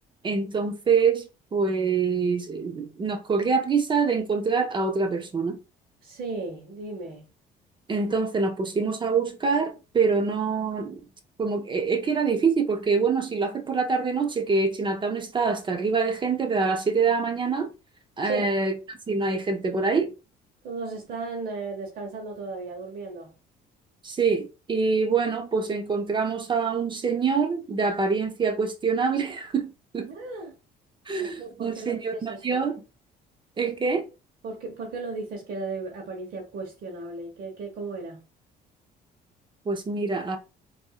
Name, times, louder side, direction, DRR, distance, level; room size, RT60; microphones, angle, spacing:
voice 1, 0.2-5.6 7.9-11.0 11.4-17.7 18.2-20.1 24.0-30.1 31.1-32.8 33.6-34.1 39.7-40.4, right 5 dB, 30° right, 0.6 m, -25 dB
voice 2, 6.0-7.2 18.2-18.5 20.6-23.3 30.1-30.5 31.2-32.6 33.6-33.7 34.4-38.3, right 3 dB, 60° right, 1.1 m, -35 dB
4.5 x 2.7 x 2.3 m
cardioid pair, 110°, 17 cm